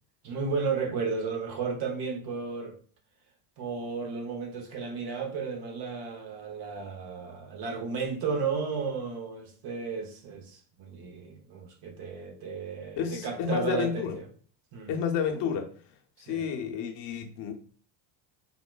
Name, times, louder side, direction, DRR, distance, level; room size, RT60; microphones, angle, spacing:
voice 1, 0.2-2.7 3.6-14.3 14.7-14.9 16.3-16.5, right 5 dB, 55° right, 0.9 m, -33 dB
voice 2, 13.0-14.2 14.9-15.7 16.2-17.5, left 6 dB, 60° left, 0.7 m, -30 dB
3.8 x 2.1 x 2.3 m
supercardioid pair, 90°, 47 cm